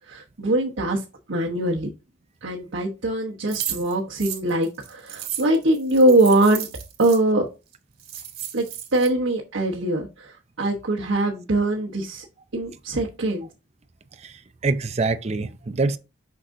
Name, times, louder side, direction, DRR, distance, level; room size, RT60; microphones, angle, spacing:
voice 1, 0.1-1.0 1.3-1.9 2.4-6.7 7.0-7.5 8.5-8.6 8.9-10.3 10.6-12.2 12.5-13.5, right 1 dB, 80° right, 1.0 m, -22 dB
sound 1, 3.5-7.2 7.7-7.8 8.0-9.1, right 11 dB, 55° right, 1.6 m, -34 dB
voice 2, 14.2-16.0, right 3 dB, 35° right, 0.5 m, -25 dB
6.3 x 5.8 x 2.6 m
head